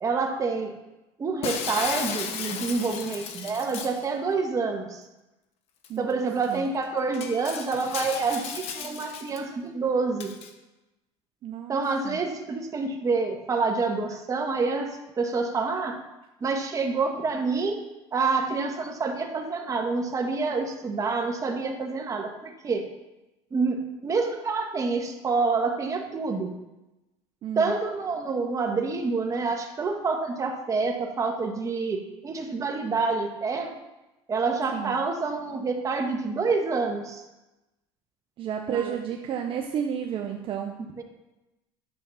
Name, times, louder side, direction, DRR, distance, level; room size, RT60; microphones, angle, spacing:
voice 1, 0.0-0.7 1.2-5.0 6.0-10.3 11.7-16.0 16.4-17.8 18.1-22.9 23.5-26.5 27.5-33.7 34.3-37.2 38.7-39.0 41.0-41.1, right 4 dB, 25° right, 3 dB, 1.4 m, -27 dB
Shatter, 1.4-4.0 5.8-5.9 6.4-6.5 7.1-9.4 10.2-10.5, left 7 dB, 60° left, 1.1 m, -35 dB
voice 2, 5.9-6.6 11.4-12.2 27.4-27.8 34.7-35.0 38.4-40.8, right 8 dB, 45° right, 3 dB, 0.9 m, -32 dB
10.5 x 7.4 x 4.2 m, 1.0 s
supercardioid pair, 115°, 12 cm